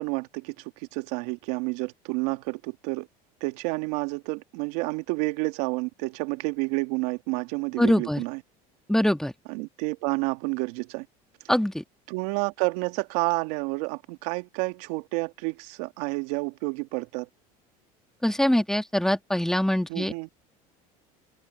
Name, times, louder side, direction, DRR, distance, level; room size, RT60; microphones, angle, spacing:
voice 1, 0.0-3.1 3.4-8.4 9.5-11.1 12.1-17.3 19.9-20.3, right 25 dB, 75° right, 2.0 m, -30 dB
voice 2, 7.8-8.2 8.9-9.3 11.5-11.8 18.2-20.1, left 1 dB, 5° left, 2.2 m, -23 dB
open air
supercardioid pair, 85°, 19 cm